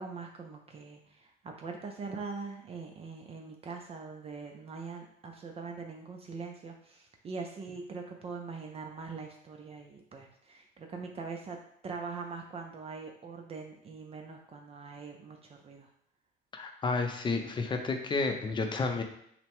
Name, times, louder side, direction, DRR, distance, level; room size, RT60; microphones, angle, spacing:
voice 1, 0.0-11.6 11.8-15.9, right 4 dB, 35° right, 2 dB, 0.5 m, -42 dB
voice 2, 16.5-19.0, left 3 dB, 30° left, 5 dB, 0.6 m, -31 dB
5.8 x 2.2 x 3.5 m, 0.71 s
cardioid pair, 110°, 17 cm